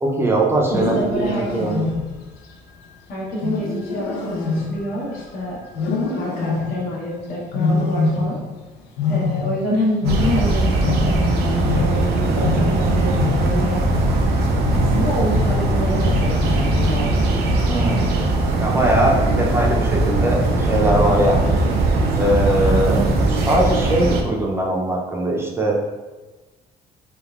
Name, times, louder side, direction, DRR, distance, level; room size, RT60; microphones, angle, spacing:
voice 1, 0.0-1.7 17.7-18.1 18.6-21.5 22.2-23.0 23.5-25.8, right 1 dB, 15° right, -2 dB, 0.5 m, -20 dB
Wild animals, 0.6-2.3 3.4-5.3 5.7-6.9 7.5-8.6 8.8-11.4 11.6-16.5 16.9-17.3 17.8-18.2 18.9-19.4, left 4 dB, 80° left, 0.5 m, -25 dB
voice 2, 0.7-1.8 3.1-5.6 6.2-8.4 9.1-12.1 12.3-13.9 14.7-17.1 22.6-23.1, equal, 60° left, -5 dB, 1.0 m, -27 dB
sound 1, 10.0-24.2, right 2 dB, 70° right, 0.5 m, -20 dB
sound 2, 10.1-23.7, equal, 40° left, 0.8 m, -30 dB
3.4 x 2.1 x 2.4 m, 1.2 s
cardioid pair, 110°, 17 cm